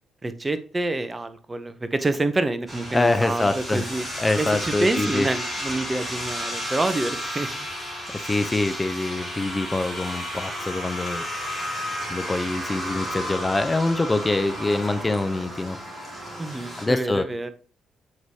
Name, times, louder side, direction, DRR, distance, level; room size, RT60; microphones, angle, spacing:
voice 1, 0.2-4.0 4.4-7.5 16.4-17.5, right 2 dB, 20° right, 11 dB, 0.7 m, -27 dB
sound 1, 2.7-16.9, equal, 5° right, 2.8 m, -32 dB
voice 2, 2.9-3.9 4.2-5.3 8.2-11.3 12.1-15.8 16.8-17.3, left 2 dB, 20° left, 10 dB, 0.5 m, -24 dB
7.8 x 4.8 x 2.8 m, 0.38 s
cardioid pair, 90°, 0 cm